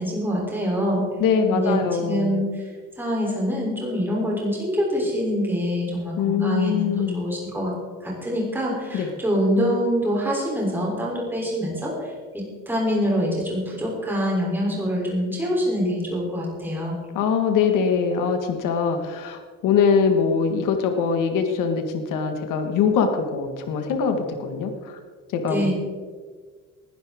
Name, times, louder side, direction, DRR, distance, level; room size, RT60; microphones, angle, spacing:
voice 1, 0.0-1.1 1.5-2.7 3.0-7.7 8.0-17.0 25.5-25.7, equal, 5° right, -3 dB, 3.5 m, -25 dB
voice 2, 1.2-2.4 6.2-7.3 8.9-9.1 17.1-25.0 25.3-25.7, left 6 dB, 80° left, 5 dB, 1.7 m, -23 dB
19.5 x 11.0 x 3.7 m, 1.5 s
cardioid pair, 160°, 31 cm